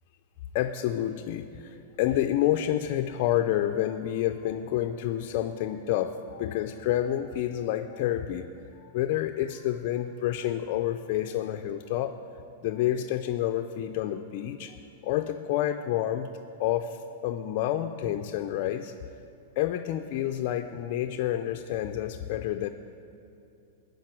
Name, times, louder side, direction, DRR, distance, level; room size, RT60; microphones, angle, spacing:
voice 1, 0.5-8.5 8.8-12.2 12.6-14.8 15.0-16.3 16.6-18.9 19.6-22.7, left 12 dB, 50° left, 7 dB, 0.4 m, -29 dB
14.5 x 5.1 x 9.0 m, 2.8 s
supercardioid pair, 140°, 0 cm